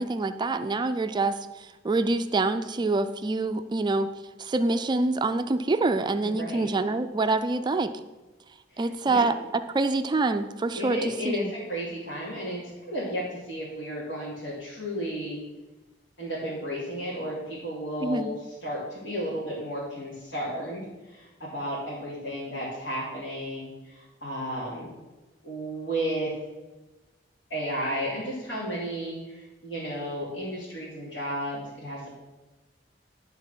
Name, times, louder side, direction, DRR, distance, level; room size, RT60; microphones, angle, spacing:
voice 1, 0.0-4.1 4.4-7.9 8.8-9.4 9.7-11.5 18.0-18.3, right 3 dB, 25° right, 10 dB, 0.4 m, -26 dB
voice 2, 6.2-6.7 8.7-9.3 10.7-12.6 12.9-15.4 16.2-24.9 25.4-26.3 27.5-32.1, equal, 75° left, -8 dB, 2.7 m, -33 dB
12.0 x 4.0 x 6.1 m, 1.1 s
head